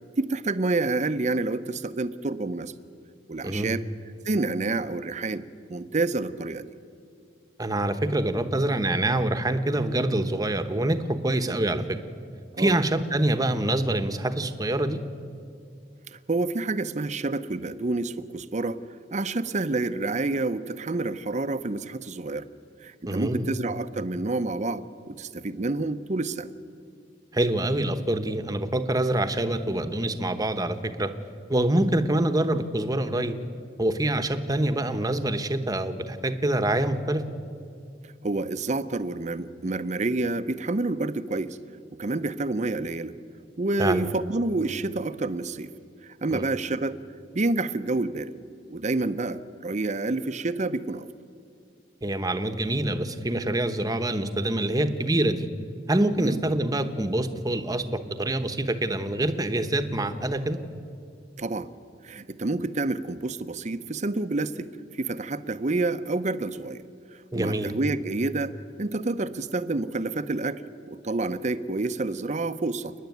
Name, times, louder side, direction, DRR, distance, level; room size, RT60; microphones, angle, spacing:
voice 1, 0.2-2.7 3.3-3.8 4.2-5.4 5.7-6.7 12.5-12.7 16.1-18.8 19.1-22.5 22.8-26.5 38.0-41.6 42.0-43.1 43.6-45.7 46.0-47.0 47.3-48.3 48.7-51.1 56.2-56.4 61.4-61.7 62.0-66.8 67.1-70.6 70.9-72.9, right 2 dB, 40° right, 12 dB, 0.7 m, -28 dB
voice 2, 3.4-3.7 7.6-12.0 12.6-15.0 23.1-23.5 27.3-31.1 31.5-33.4 33.8-37.2 43.8-44.0 46.3-46.4 52.0-55.5 55.9-60.6 67.3-67.7, right 1 dB, 20° right, 9 dB, 1.0 m, -25 dB
29.0 x 10.5 x 9.4 m, 2.4 s
head